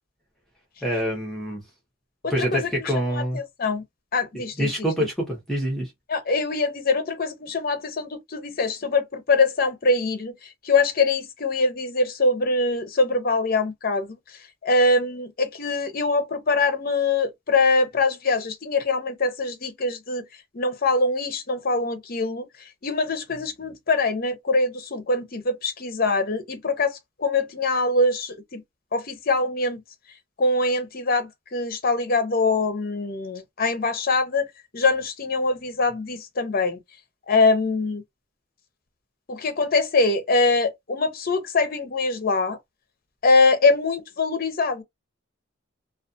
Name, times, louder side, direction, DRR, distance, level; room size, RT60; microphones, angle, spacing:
voice 1, 0.8-1.6 2.3-3.4 4.6-5.9, equal, ahead, 0.9 m, -26 dB
voice 2, 2.2-3.8 4.1-4.7 6.1-10.3 10.6-14.1 14.6-20.2 20.5-22.5 22.8-28.6 28.9-29.8 30.4-34.5 34.7-36.8 37.3-38.0 39.3-42.6 43.2-44.8, left 3 dB, 45° left, 0.6 m, -23 dB
2.4 x 2.3 x 2.6 m
head